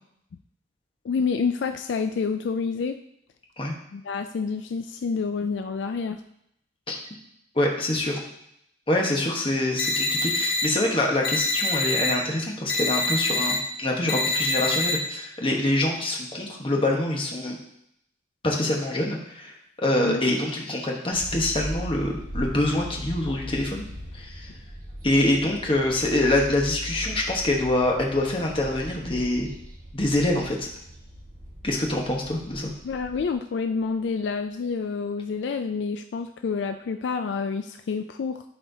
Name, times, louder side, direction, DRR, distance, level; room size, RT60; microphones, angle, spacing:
voice 1, 1.0-3.0 3.9-6.2 20.0-20.2 32.8-38.4, left 5 dB, 70° left, 8 dB, 0.3 m, -28 dB
voice 2, 7.5-8.2 8.9-17.6 18.4-23.9 24.1-24.5 25.0-29.5 29.9-30.7 31.6-32.7, left 1 dB, 30° left, 0 dB, 1.1 m, -25 dB
sound 1, 9.8-10.6 11.2-12.1 12.7-13.5 14.1-14.9, left 2 dB, 55° left, 1.7 m, -25 dB
sound 2, 21.1-33.3, equal, 45° right, 1.6 m, -39 dB
11.5 x 4.3 x 2.7 m, 0.75 s
head